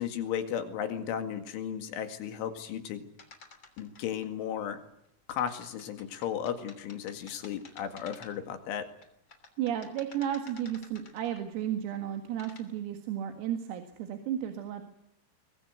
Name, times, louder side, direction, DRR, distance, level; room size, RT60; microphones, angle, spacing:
voice 1, 0.0-3.0 3.8-4.8 5.3-8.9, left 9 dB, 70° left, 8 dB, 4.3 m, -35 dB
sound 1, 3.2-4.3 5.4-8.6 9.0-11.6 12.1-12.7, left 4 dB, 30° left, 2.6 m, -53 dB
voice 2, 9.6-14.8, right 10 dB, 80° right, 6 dB, 4.5 m, -33 dB
22.5 x 22.5 x 8.0 m, 0.78 s
omnidirectional pair, 6.0 m